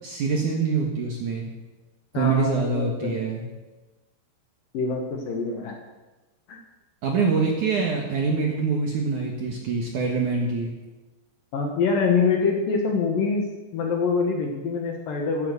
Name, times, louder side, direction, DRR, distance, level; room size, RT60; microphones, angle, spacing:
voice 1, 0.0-1.5 2.2-3.4 7.0-10.7, right 4 dB, 60° right, 0 dB, 2.2 m, -25 dB
voice 2, 2.1-3.2 4.7-5.8 6.5-6.6 11.5-15.5, left 4 dB, 60° left, 2 dB, 2.6 m, -25 dB
16.0 x 10.5 x 7.0 m, 1.1 s
omnidirectional pair, 5.4 m